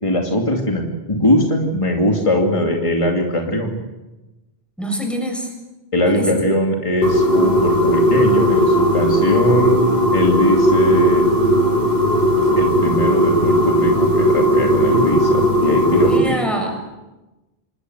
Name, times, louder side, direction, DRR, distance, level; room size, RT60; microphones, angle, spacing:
voice 1, 0.0-3.8 5.9-9.8 10.1-11.2 12.6-16.4, equal, 30° left, 0 dB, 2.7 m, -20 dB
voice 2, 4.8-5.5 6.0-6.4 16.1-16.9, equal, ahead, 2 dB, 6.9 m, -25 dB
sound 1, 7.0-16.2, equal, 80° left, 5.5 m, -16 dB
27.5 x 20.5 x 7.9 m, 1.1 s
omnidirectional pair, 1.1 m